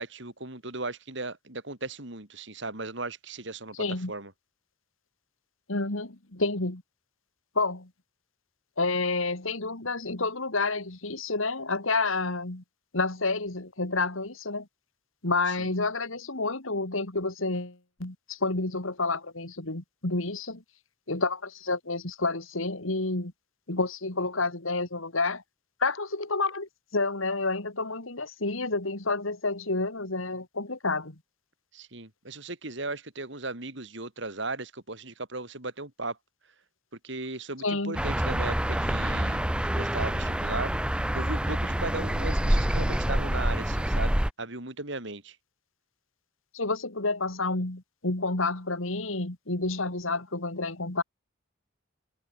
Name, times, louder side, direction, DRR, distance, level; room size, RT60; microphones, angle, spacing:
voice 1, 0.0-3.8 4.1-4.3 15.6-15.7 31.7-36.2 37.0-40.7 41.1-45.4, right 2 dB, 55° right, 3.3 m, -37 dB
voice 2, 3.8-4.1 5.7-6.8 7.5-7.9 8.8-12.6 12.9-14.7 15.2-20.6 21.1-23.3 23.7-25.4 25.8-31.2 37.6-38.0 46.5-51.0, left 3 dB, 75° left, 2.6 m, -29 dB
sound 1, 37.9-44.3, right 1 dB, 5° right, 0.5 m, -27 dB
head